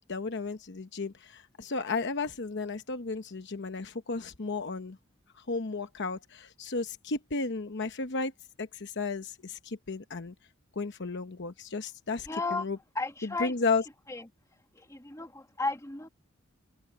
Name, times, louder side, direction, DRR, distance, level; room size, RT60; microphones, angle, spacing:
voice 1, 0.1-5.0 5.4-8.3 8.6-10.3 10.8-12.8 13.4-13.8, left 4 dB, 55° left, 0.9 m, -33 dB
voice 2, 12.3-12.7 13.0-13.5 14.1-14.3 14.7-16.1, left 3 dB, 15° left, 2.0 m, -34 dB
head